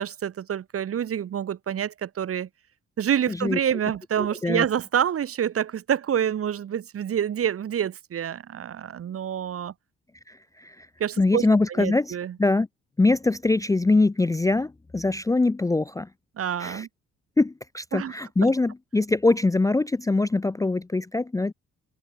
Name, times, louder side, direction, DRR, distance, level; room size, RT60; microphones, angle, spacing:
voice 1, 0.0-2.5 3.0-9.7 11.0-11.5 11.8-12.3 16.4-16.9 17.9-18.1, right 9 dB, 50° right, 1.1 m, -27 dB
voice 2, 3.3-3.6 4.4-4.6 10.3-10.9 11.2-12.7 13.0-16.1 16.6-16.9 17.4-21.5, left 3 dB, 10° left, 0.5 m, -23 dB
cardioid pair, 90°, 30 cm